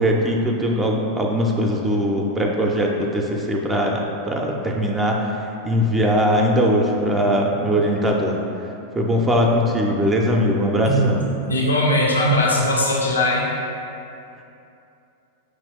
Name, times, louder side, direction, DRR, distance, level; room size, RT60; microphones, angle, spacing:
voice 1, 0.0-8.4 8.9-11.3, equal, 15° right, 0 dB, 0.4 m, -20 dB
voice 2, 11.5-13.5, left 1 dB, 75° left, -2 dB, 0.4 m, -19 dB
6.1 x 2.3 x 3.5 m, 2.7 s
figure-of-eight pair, 90°, 0 cm